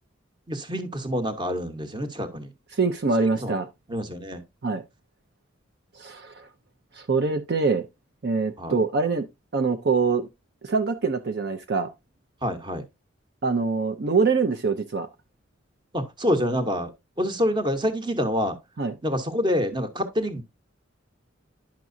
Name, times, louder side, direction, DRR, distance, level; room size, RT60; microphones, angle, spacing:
voice 1, 0.5-2.5 3.2-3.5 3.9-4.4 8.6-8.8 12.4-12.8 15.9-16.9 17.2-18.6 19.0-20.4, equal, 25° right, 1.0 m, -27 dB
voice 2, 2.7-3.7 4.6-4.8 6.0-6.5 6.9-7.8 8.2-9.3 9.5-10.3 10.6-11.9 13.4-15.1 18.8-18.9, right 4 dB, 55° right, 0.6 m, -24 dB
10.5 x 6.0 x 2.6 m
head